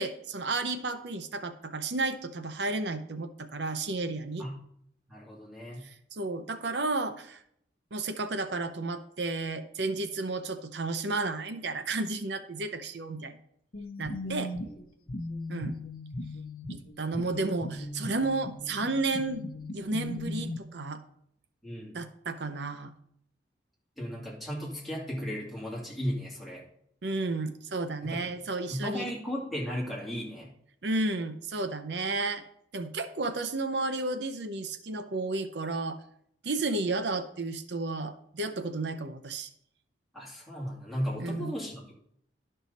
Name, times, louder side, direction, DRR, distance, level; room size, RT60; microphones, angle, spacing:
voice 1, 0.0-4.5 5.8-7.4 7.9-13.4 14.0-14.5 15.5-15.8 16.7-19.4 19.7-21.0 21.9-22.9 27.0-29.1 30.8-32.4 32.7-36.0 36.4-39.5 41.2-41.5, right 3 dB, 65° right, 9 dB, 0.7 m, -32 dB
voice 2, 5.1-5.9 14.2-14.3 14.6-14.8 21.6-22.0 24.0-26.6 28.0-28.3 28.7-30.5 40.1-41.9, equal, ahead, -5 dB, 2.5 m, -35 dB
sound 1, 13.7-20.6, left 1 dB, 50° left, 0.8 m, -38 dB
11.5 x 5.5 x 4.1 m, 0.70 s
head